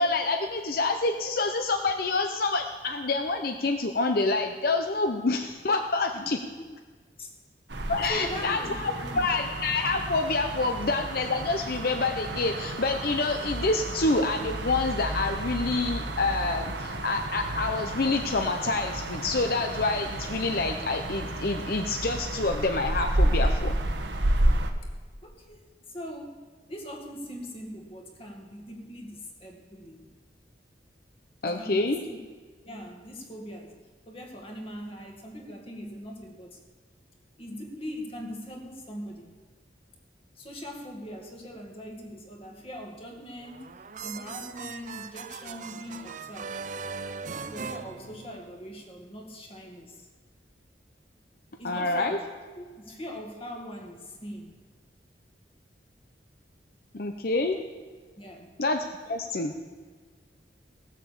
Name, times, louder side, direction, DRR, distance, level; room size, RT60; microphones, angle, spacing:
voice 1, 0.0-6.4 7.9-23.7 31.4-32.0 51.6-52.2 56.9-57.6 58.6-59.5, left 3 dB, 55° left, 5 dB, 0.8 m, -27 dB
voice 2, 6.3-6.7 7.2-7.3 8.1-9.2 25.2-26.4 26.7-30.1 31.4-32.2 32.6-33.8 34.1-36.6 37.4-39.3 40.4-43.7 44.0-46.5 47.3-50.1 51.6-52.2 52.5-54.5 58.2-58.5 59.5-59.6, equal, 30° left, 2 dB, 2.0 m, -41 dB
sound 1, 7.7-24.7, right 1 dB, 85° right, 1.3 m, -31 dB
sound 2, 43.4-48.7, right 5 dB, 45° right, 0.6 m, -39 dB
17.5 x 7.5 x 7.1 m, 1.4 s
head